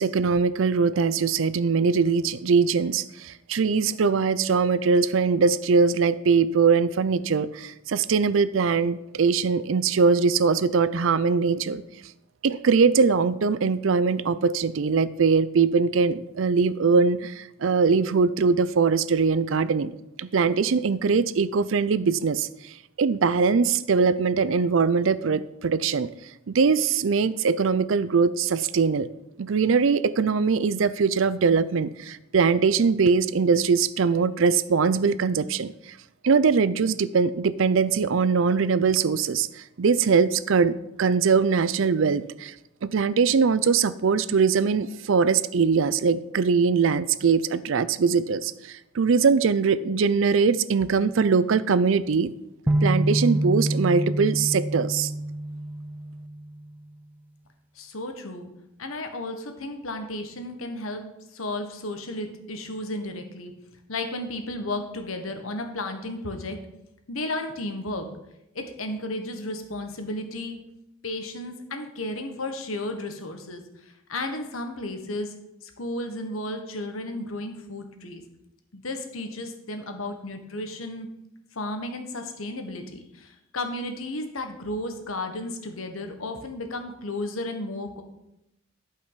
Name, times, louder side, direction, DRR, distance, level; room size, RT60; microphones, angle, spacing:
voice 1, 0.0-11.8 12.4-19.9 20.2-22.7 23.0-26.1 26.5-29.1 29.4-35.7 36.2-42.5 42.8-52.3 52.8-55.1, right 5 dB, 70° right, 16 dB, 0.5 m, -22 dB
sound 1, 52.7-56.7, right 1 dB, 10° right, 0.3 m, -26 dB
voice 2, 57.7-58.5 58.8-61.0 61.3-63.5 63.9-66.6 67.1-68.1 68.5-70.6 71.0-75.3 75.6-78.2 78.7-81.1 81.5-88.0, left 1 dB, 90° left, 6 dB, 1.4 m, -33 dB
12.0 x 5.6 x 5.7 m, 0.86 s
head